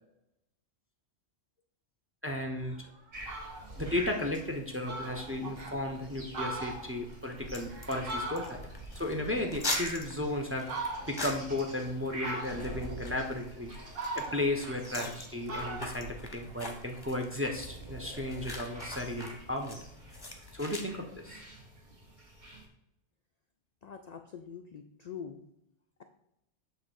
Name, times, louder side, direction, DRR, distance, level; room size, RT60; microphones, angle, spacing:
voice 1, 2.2-2.8 3.8-8.6 8.9-10.7 11.1-13.7 14.2-19.8 20.5-21.4, left 1 dB, 15° right, 3 dB, 0.6 m, -34 dB
Fowl, 2.6-2.7 3.1-3.7 4.2-4.3 4.5-4.6 4.9-5.8 6.2-8.8 9.2-10.2 10.6-11.3 12.2-12.9 13.4-15.2 15.5-17.1, right 2 dB, 55° right, 1.3 m, -40 dB
sound 1, 3.1-22.7, right 1 dB, 40° right, 1.6 m, -46 dB
sound 2, 7.4-20.8, left 2 dB, 20° left, 0.9 m, -43 dB
voice 2, 23.8-25.4, left 7 dB, 55° left, 6 dB, 0.5 m, -44 dB
7.6 x 3.2 x 6.3 m, 0.82 s
omnidirectional pair, 1.2 m